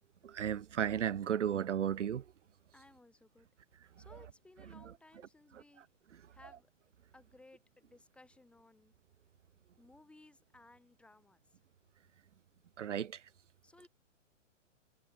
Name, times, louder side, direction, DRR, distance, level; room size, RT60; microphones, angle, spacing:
voice 1, 0.2-2.2 12.8-13.2, right 9 dB, 65° right, 2.6 m, -34 dB
voice 2, 2.7-3.5 4.0-5.9 6.3-6.7 7.1-8.9 9.8-11.6 13.6-13.9, left 2 dB, 5° left, 7.0 m, -61 dB
hypercardioid pair, 170°, 38 cm